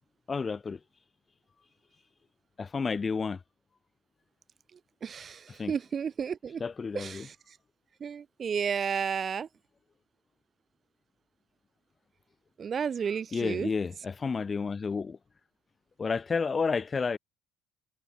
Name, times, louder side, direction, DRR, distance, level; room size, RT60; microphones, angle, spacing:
voice 1, 0.3-0.8 2.6-3.4 5.6-5.7 6.6-7.3 13.3-15.2 16.0-17.2, left 5 dB, 15° left, 2.9 m, -31 dB
voice 2, 5.0-6.6 6.9-7.6 8.0-9.5 12.6-13.7, right 7 dB, 25° right, 7.5 m, -32 dB
cardioid pair, 175°, 0 cm